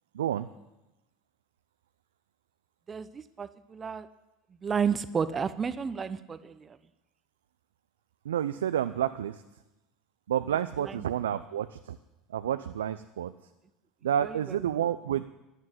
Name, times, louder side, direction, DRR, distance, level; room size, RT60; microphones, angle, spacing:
voice 1, 0.1-0.5 8.2-9.4 10.3-12.0 12.3-13.3 14.0-15.2, right 10 dB, 80° right, 11 dB, 0.4 m, -29 dB
voice 2, 2.9-4.1 4.6-6.8 10.8-11.0 14.2-14.7, right 6 dB, 30° right, 14 dB, 0.8 m, -32 dB
13.0 x 9.6 x 8.0 m, 0.96 s
hypercardioid pair, 75°, 0 cm